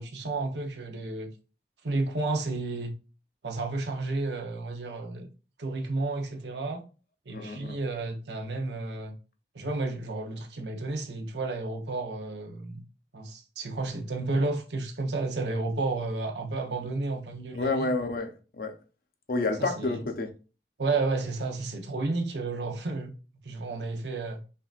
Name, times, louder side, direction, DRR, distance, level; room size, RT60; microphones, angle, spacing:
voice 1, 0.0-1.3 1.8-2.9 3.4-5.3 5.6-6.8 7.3-9.2 9.5-12.8 13.1-18.0 19.6-20.0 20.8-23.1 23.4-24.4, right 3 dB, 75° right, 0.8 m, -32 dB
voice 2, 7.3-7.8 17.5-18.8 19.3-20.3, left 3 dB, 55° left, 0.6 m, -29 dB
5.5 x 2.6 x 2.4 m
head